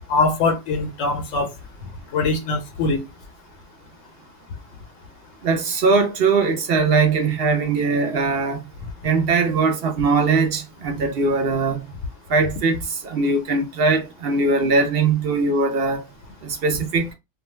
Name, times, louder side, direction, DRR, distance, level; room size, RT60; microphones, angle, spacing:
voice 1, 0.1-1.5 2.1-3.0, left 3 dB, 85° left, 1.0 m, -22 dB
voice 2, 5.4-8.6 9.0-11.9 12.3-16.0 16.4-17.1, right 4 dB, 55° right, 0.8 m, -20 dB
2.4 x 2.2 x 3.0 m
omnidirectional pair, 1.3 m